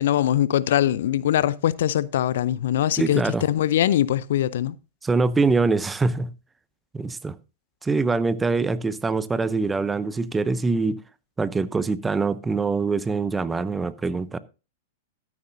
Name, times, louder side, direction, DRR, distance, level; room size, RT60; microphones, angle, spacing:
voice 1, 0.0-4.8, left 11 dB, 65° left, 0.5 m, -22 dB
voice 2, 3.0-3.4 5.0-6.3 6.9-7.4 7.8-11.0 11.4-14.4, right 4 dB, 15° right, 0.7 m, -24 dB
12.5 x 9.5 x 2.6 m
hypercardioid pair, 105°, 0 cm